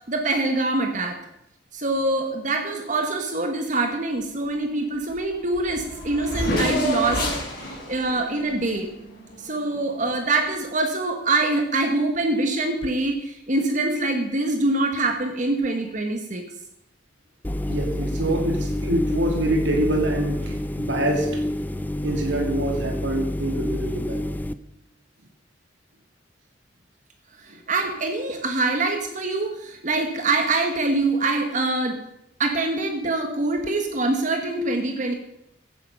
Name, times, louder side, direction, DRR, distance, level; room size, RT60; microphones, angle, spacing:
voice 1, 0.1-1.2 1.7-7.3 7.6-8.9 9.4-16.5 27.4-32.0 32.4-35.1, right 2 dB, 40° right, 4 dB, 1.3 m, -24 dB
Race car auto racing / Accelerating revving vroom, 5.2-5.3 5.5-9.5, equal, 50° left, 4.8 m, -29 dB
sound 1, 17.4-24.5, left 1 dB, 10° left, 0.5 m, -28 dB
voice 2, 17.7-21.3 22.0-24.3, right 1 dB, 80° right, 2 dB, 2.5 m, -25 dB
15.5 x 9.5 x 5.5 m, 0.81 s
head